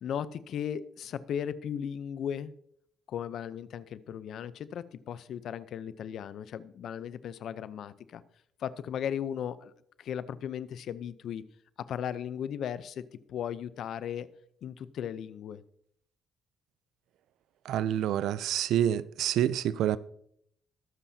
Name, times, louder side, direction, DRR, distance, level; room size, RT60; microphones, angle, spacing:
voice 1, 0.0-2.5 3.1-8.2 8.6-9.7 10.0-11.4 11.8-13.0 13.3-14.3 14.6-15.6, left 9 dB, 70° left, 0.6 m, -36 dB
voice 2, 17.7-20.0, right 11 dB, 80° right, 0.4 m, -27 dB
21.0 x 7.5 x 2.8 m
cardioid pair, 90°, 0 cm